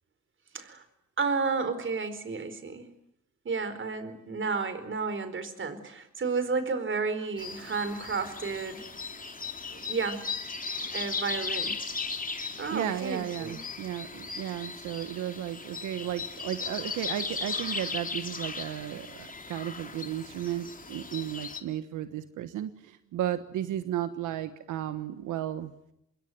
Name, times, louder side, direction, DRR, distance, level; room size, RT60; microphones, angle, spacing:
voice 1, 0.5-0.8 1.2-2.9 3.4-8.8 9.7-10.2 10.9-11.8 12.6-13.6, right 4 dB, 40° right, 12 dB, 4.4 m, -32 dB
sound 1, 7.4-21.6, left 4 dB, 25° left, 3.2 m, -37 dB
voice 2, 12.7-25.7, right 12 dB, 85° right, 10 dB, 1.4 m, -34 dB
26.5 x 21.5 x 9.4 m, 0.79 s
cardioid pair, 90°, 30 cm